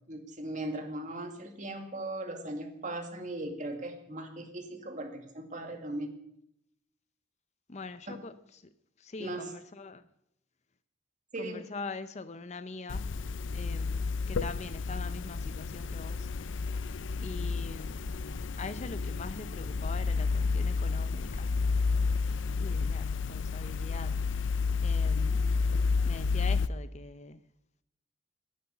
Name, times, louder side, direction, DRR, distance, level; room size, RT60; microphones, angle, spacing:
voice 1, 0.1-6.1 9.2-9.5 11.3-11.6, right 1 dB, 40° right, 2.2 m, -38 dB
voice 2, 7.7-8.6 9.0-10.1 11.4-13.1 13.5-16.7 17.2-18.1 18.6-21.6 22.6-24.4 24.8-25.5 26.0-27.4, left 3 dB, 35° left, 0.6 m, -43 dB
sound 1, 12.9-26.7, left 4 dB, 80° left, 0.5 m, -31 dB
11.0 x 9.8 x 9.9 m
head